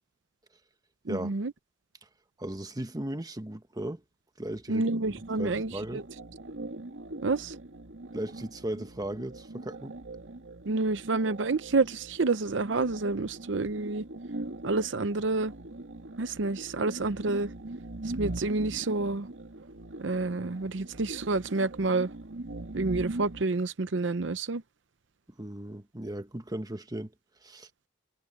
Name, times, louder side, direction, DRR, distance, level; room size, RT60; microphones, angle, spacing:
voice 1, 1.1-1.5 4.7-6.0 7.2-7.5 10.7-14.0 14.6-15.5 16.2-17.5 18.2-19.3 20.0-22.1 22.7-24.6, right 3 dB, 70° right, 0.7 m, -29 dB
voice 2, 2.4-4.0 4.4-4.9 5.4-6.1 8.1-10.0 25.4-27.1 27.4-27.7, right 1 dB, 20° right, 1.3 m, -36 dB
sound 1, 5.0-23.4, right 2 dB, 85° right, 2.1 m, -41 dB
head